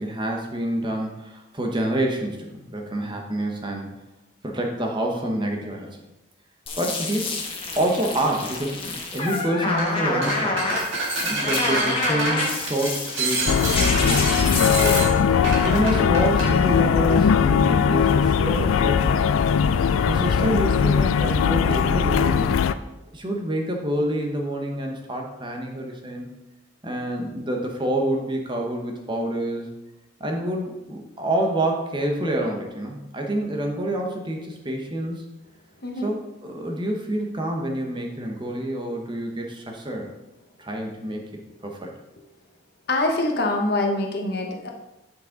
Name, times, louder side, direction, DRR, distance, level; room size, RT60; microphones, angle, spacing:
voice 1, 0.0-3.9 4.4-5.9 6.8-7.3 7.7-10.6 11.2-15.1 15.6-19.3 20.1-22.5 23.1-26.3 26.8-29.7 30.2-35.2 36.0-40.1 40.6-41.3 41.6-41.9, right 1 dB, 25° right, 1 dB, 0.9 m, -27 dB
sound 1, 6.7-15.0, left 3 dB, 30° left, 1.1 m, -28 dB
sound 2, 9.7-9.9 10.2-16.5, right 2 dB, 70° right, 1.8 m, -28 dB
sound 3, 13.5-22.7, left 6 dB, 90° left, 0.4 m, -20 dB
voice 2, 42.9-44.7, left 2 dB, 50° left, 2 dB, 1.0 m, -24 dB
7.7 x 6.0 x 3.9 m, 0.99 s
head